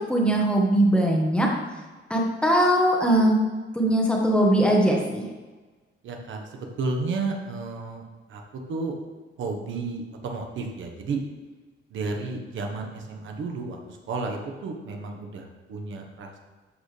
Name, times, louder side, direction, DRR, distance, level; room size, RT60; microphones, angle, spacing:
voice 1, 0.1-1.5 2.1-3.4 3.7-5.2, right 1 dB, 5° left, -1 dB, 1.3 m, -20 dB
voice 2, 6.0-8.0 8.3-9.0 9.4-11.2 11.9-16.4, right 3 dB, 70° right, 2 dB, 1.3 m, -32 dB
12.5 x 6.7 x 3.4 m, 1.3 s
cardioid pair, 175°, 20 cm